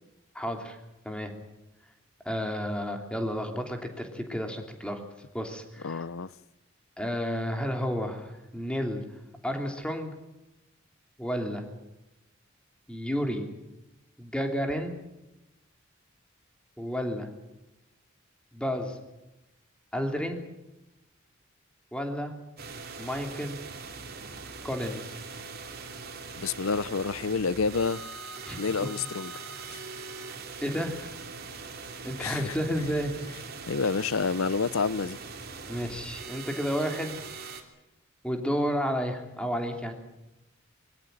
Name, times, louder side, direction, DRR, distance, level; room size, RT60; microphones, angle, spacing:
voice 1, 0.3-0.8 1.0-1.3 2.2-5.0 5.3-6.0 7.0-9.0 9.4-10.1 11.2-11.7 12.9-13.5 14.2-15.0 16.8-17.3 18.5-19.0 19.9-20.4 21.9-22.3 23.0-23.6 24.6-25.1 28.4-28.6 30.6-31.1 32.0-33.1 35.7-37.2 38.2-39.9, equal, 5° left, 3.0 m, -31 dB
voice 2, 5.8-6.3 26.4-28.1 28.6-29.3 32.2-32.6 33.7-35.2, left 5 dB, 85° left, 0.7 m, -28 dB
sound 1, 22.6-37.6, right 4 dB, 50° right, 3.0 m, -42 dB
23.0 x 16.5 x 9.0 m
head